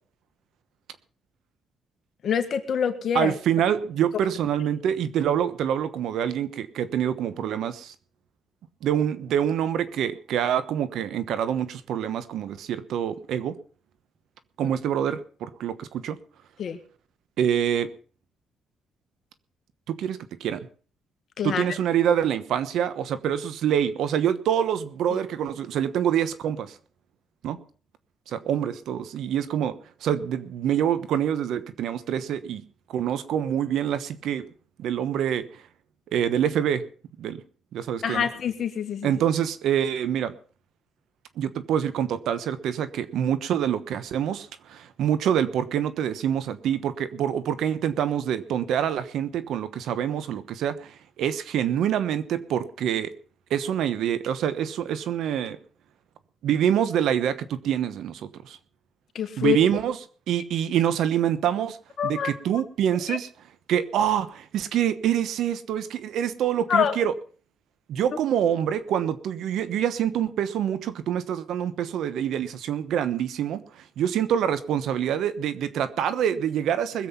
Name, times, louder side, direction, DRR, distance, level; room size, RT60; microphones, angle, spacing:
voice 1, 2.2-3.3 14.6-14.7 16.6-16.8 21.4-21.8 25.1-25.2 38.0-39.1 59.2-59.6 62.0-62.3 63.1-63.2 66.7-67.0, left 8 dB, 60° left, 7 dB, 1.8 m, -26 dB
voice 2, 3.1-7.9 8.8-13.6 14.6-16.2 17.4-17.9 19.9-20.7 21.4-26.7 27.4-27.6 28.3-29.7 30.0-32.6 32.9-34.5 34.8-35.4 36.1-36.8 37.2-37.4 37.7-38.3 39.0-40.3 41.4-53.1 53.5-55.6 56.4-58.6 59.4-60.0 60.3-61.8 62.0-63.3 63.7-67.1 67.9-77.1, right 9 dB, 80° right, 14 dB, 1.1 m, -26 dB
21.0 x 7.7 x 5.6 m, 0.42 s
cardioid pair, 90°, 0 cm